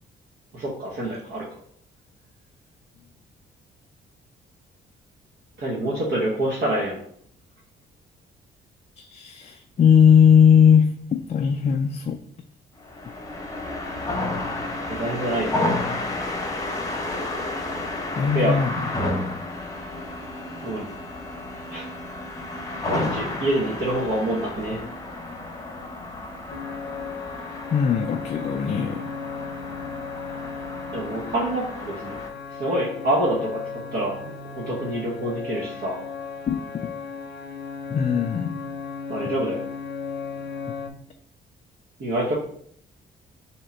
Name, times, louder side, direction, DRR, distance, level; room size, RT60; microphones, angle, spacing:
voice 1, 0.5-1.5 5.6-7.0 14.9-15.5 17.9-18.1 18.3-18.6 20.6-20.9 21.7-21.9 22.9-24.9 30.9-32.2 32.5-36.0 39.1-39.6 42.0-42.3, right 1 dB, 55° right, -5 dB, 1.1 m, -26 dB
voice 2, 9.0-12.2 18.2-18.7 27.7-29.1 36.5-36.9 37.9-38.5, left 7 dB, 35° left, 5 dB, 0.4 m, -19 dB
sound 1, 12.8-32.3, left 2 dB, 15° left, 0.9 m, -32 dB
sound 2, 26.5-40.9, left 5 dB, 60° left, 0.7 m, -35 dB
3.5 x 2.9 x 4.3 m, 0.63 s
cardioid pair, 90°, 20 cm